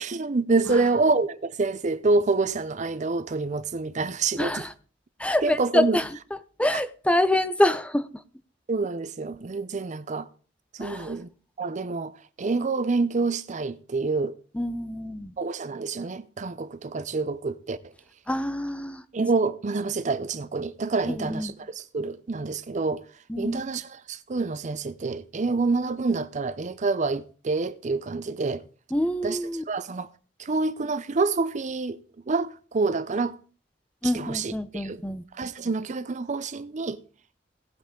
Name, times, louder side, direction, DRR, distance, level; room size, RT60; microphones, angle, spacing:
voice 1, 0.0-4.6 5.4-6.0 6.7-6.8 8.7-10.3 10.7-11.3 11.6-12.1 12.4-14.3 15.4-17.9 19.1-23.0 23.4-28.6 29.2-29.4 29.7-30.1 30.4-32.0 32.3-33.4 34.0-35.0 35.3-37.0, right 3 dB, 40° right, 0.5 m, -27 dB
voice 2, 4.4-4.7 5.2-6.1 6.6-8.1 10.8-11.1 14.5-15.3 18.3-19.0 21.1-21.5 23.3-23.6 28.9-29.6 34.0-35.2, left 1 dB, 5° left, 0.6 m, -26 dB
17.5 x 8.6 x 3.7 m
head